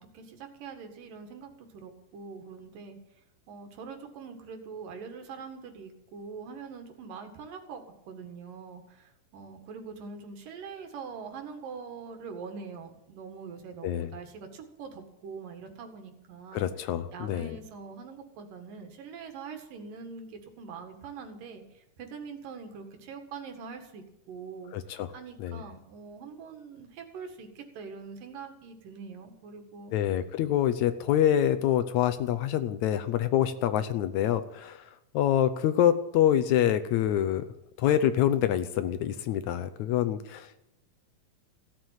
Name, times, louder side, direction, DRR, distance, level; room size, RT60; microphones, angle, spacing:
voice 1, 0.0-3.0 3.5-16.7 17.1-29.9, right 5 dB, 85° right, 5 dB, 3.6 m, -43 dB
voice 2, 16.5-17.6 24.7-25.1 25.4-25.6 29.9-37.4 37.8-40.6, left 11 dB, 75° left, 11 dB, 1.9 m, -26 dB
16.0 x 7.9 x 9.0 m, 0.87 s
omnidirectional pair, 3.8 m